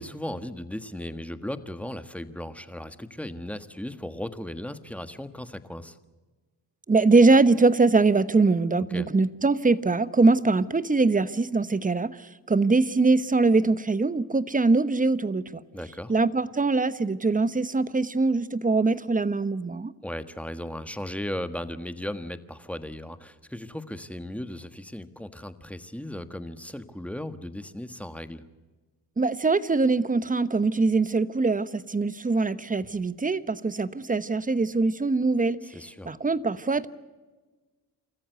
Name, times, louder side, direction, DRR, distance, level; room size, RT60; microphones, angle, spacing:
voice 1, 0.0-6.0 8.9-9.1 15.7-16.1 20.0-28.4 35.6-36.2, left 1 dB, 5° left, 10 dB, 1.5 m, -36 dB
voice 2, 6.9-15.6 16.1-19.9 29.2-35.6 36.0-36.9, right 3 dB, 20° right, 15 dB, 1.0 m, -22 dB
28.0 x 14.0 x 7.9 m, 1.3 s
cardioid pair, 75°, 39 cm